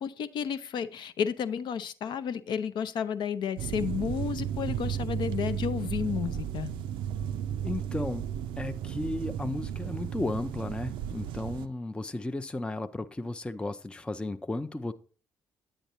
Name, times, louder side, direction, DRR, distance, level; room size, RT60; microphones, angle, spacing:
voice 1, 0.0-6.7, left 7 dB, 50° left, 0.6 m, -32 dB
sound 1, 3.6-11.7, right 9 dB, 60° right, 0.4 m, -34 dB
voice 2, 7.6-8.2 8.6-14.9, left 2 dB, 10° left, 0.5 m, -34 dB
10.0 x 8.8 x 3.0 m
figure-of-eight pair, 40°, 10 cm